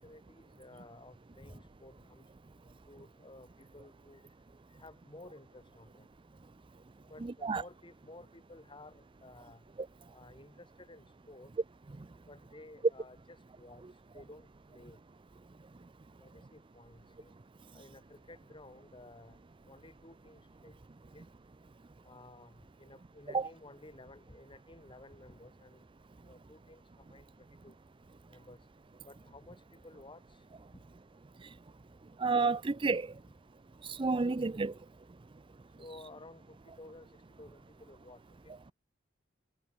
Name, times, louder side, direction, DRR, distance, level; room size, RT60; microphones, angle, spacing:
voice 1, 0.0-2.2 2.9-3.5 3.7-4.2 4.8-6.1 7.1-9.6 10.1-11.5 12.3-13.8 14.1-15.0 16.2-17.3 17.7-19.4 19.7-20.8 21.1-21.2 22.0-25.8 26.3-26.8 27.1-27.2 27.6-27.7 28.3-28.6 29.0-30.2 30.7-30.8 35.8-37.1 37.4-38.2, left 2 dB, 25° left, 6.7 m, -54 dB
voice 2, 32.2-33.1 33.8-34.7, right 4 dB, 25° right, 0.5 m, -30 dB
head